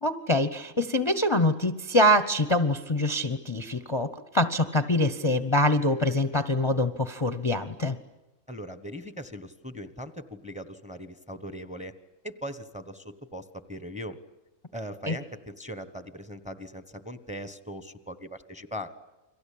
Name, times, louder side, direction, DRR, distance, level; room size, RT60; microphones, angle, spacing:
voice 1, 0.0-8.0 15.1-15.2, left 1 dB, 25° left, 10 dB, 0.9 m, -24 dB
voice 2, 8.5-11.9 12.2-14.2 14.7-18.9, equal, 5° right, 12 dB, 1.1 m, -39 dB
30.0 x 23.0 x 8.6 m, 1.1 s
omnidirectional pair, 1.5 m